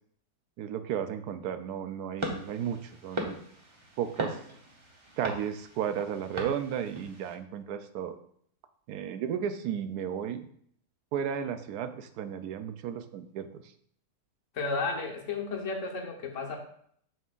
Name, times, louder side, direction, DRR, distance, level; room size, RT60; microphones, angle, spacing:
voice 1, 0.6-3.4 4.0-4.4 5.2-8.2 8.9-10.5 11.1-13.7, right 8 dB, 80° right, 10 dB, 1.1 m, -34 dB
sound 1, 2.2-7.3, equal, 20° right, 0.9 m, -39 dB
voice 2, 14.5-16.6, left 3 dB, 55° left, 1 dB, 1.3 m, -33 dB
7.5 x 5.5 x 2.5 m, 0.64 s
omnidirectional pair, 1.6 m